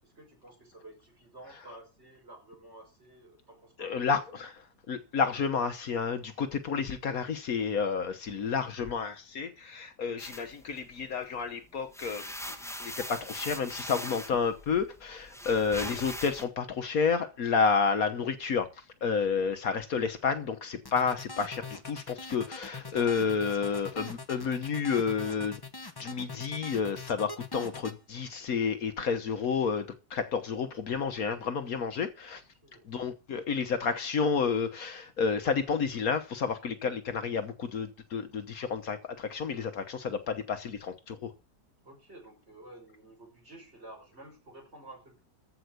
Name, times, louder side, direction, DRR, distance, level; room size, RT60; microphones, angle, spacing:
voice 1, 0.0-4.0 15.3-15.6 32.3-32.9 41.8-45.2, right 1 dB, 40° right, 6.3 m, -51 dB
voice 2, 3.8-4.5 4.9-12.2 12.8-18.7 19.0-25.6 26.0-32.4 32.9-41.3, left 5 dB, 65° left, 1.5 m, -30 dB
sound 1, 10.2-11.4 11.8-16.4, left 1 dB, ahead, 1.4 m, -41 dB
sound 2, 20.8-28.0, left 3 dB, 20° left, 0.8 m, -43 dB
14.5 x 5.6 x 8.1 m
omnidirectional pair, 1.7 m